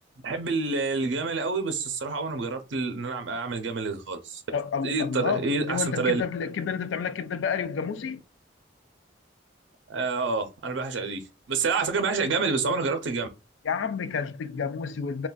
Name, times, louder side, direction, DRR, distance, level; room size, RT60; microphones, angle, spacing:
voice 1, 0.2-4.4 4.8-6.2 9.9-11.2 11.5-13.3, right 4 dB, 75° right, 0.5 m, -28 dB
voice 2, 4.5-8.2 13.6-15.3, left 6 dB, 85° left, 0.4 m, -30 dB
3.8 x 2.3 x 2.3 m
head